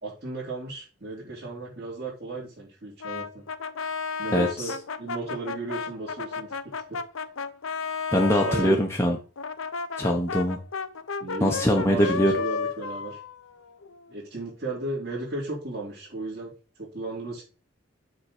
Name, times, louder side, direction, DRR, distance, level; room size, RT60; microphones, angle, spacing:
voice 1, 0.0-3.4 4.2-6.5 6.9-7.0 8.4-8.8 11.2-13.2 14.1-17.4, right 2 dB, 50° right, -8 dB, 3.7 m, -35 dB
Brass instrument, 3.0-8.8 9.4-14.1, left 5 dB, 90° left, 0.7 m, -33 dB
voice 2, 4.3-4.7 8.1-9.2 10.0-10.6 11.4-12.3, equal, 15° left, 0 dB, 1.0 m, -22 dB
7.2 x 3.9 x 6.7 m, 0.36 s
head